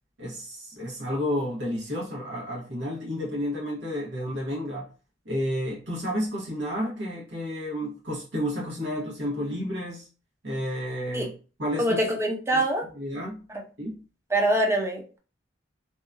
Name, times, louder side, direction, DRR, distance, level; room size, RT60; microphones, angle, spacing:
voice 1, 0.2-4.9 5.2-10.1 10.4-11.3 11.6-12.0 12.5-12.6 12.9-13.5 13.8-14.0, equal, 85° right, 1.0 m, -31 dB
voice 2, 11.8-12.9 14.3-15.2, right 1 dB, 15° right, 0.5 m, -24 dB
2.8 x 2.2 x 2.4 m
head